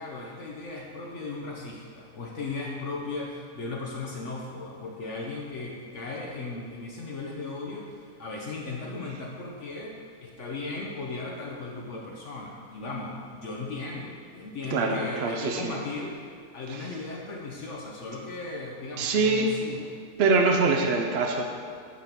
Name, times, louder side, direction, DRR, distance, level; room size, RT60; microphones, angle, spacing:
voice 1, 0.0-16.3 16.5-19.8, left 3 dB, 55° left, -2 dB, 1.0 m, -37 dB
voice 2, 14.7-15.8 19.0-19.5 20.2-21.4, right 3 dB, 60° right, 2 dB, 0.7 m, -24 dB
9.7 x 3.7 x 5.8 m, 2.2 s
omnidirectional pair, 1.6 m